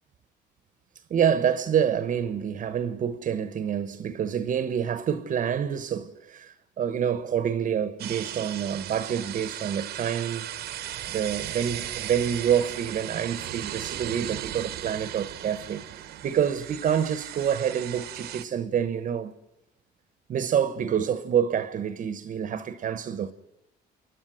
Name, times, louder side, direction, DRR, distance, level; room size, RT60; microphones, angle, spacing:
voice 1, 1.1-10.5 11.1-15.8 16.2-19.3 20.3-23.3, right 8 dB, 50° right, 1.3 m, -27 dB
sound 1, 8.0-18.4, right 12 dB, 75° right, 1.3 m, -37 dB
29.0 x 11.0 x 9.3 m
cardioid pair, 110°, 17 cm